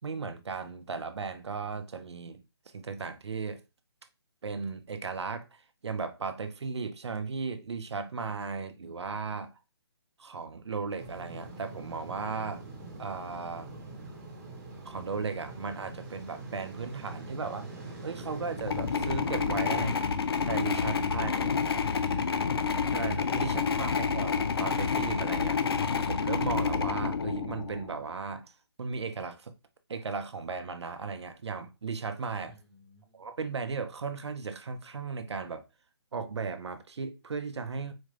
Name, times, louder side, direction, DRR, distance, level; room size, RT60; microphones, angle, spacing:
voice 1, 0.0-2.4 2.7-3.6 4.4-5.5 5.8-9.5 10.2-12.6 13.0-13.7 14.9-17.7 18.0-20.0 20.5-21.4 22.9-25.6 26.0-28.5 28.8-29.5 29.9-32.5 33.1-35.6 36.1-37.9, right 4 dB, 85° right, 0.7 m, -36 dB
sound 1, 11.0-19.8, right 2 dB, 40° right, 1.2 m, -43 dB
sound 2, 18.6-27.9, left 5 dB, 65° left, 0.5 m, -29 dB
voice 2, 20.9-22.5 32.5-33.2, left 1 dB, ahead, 0.9 m, -52 dB
4.3 x 2.5 x 3.2 m
hypercardioid pair, 175°, 14 cm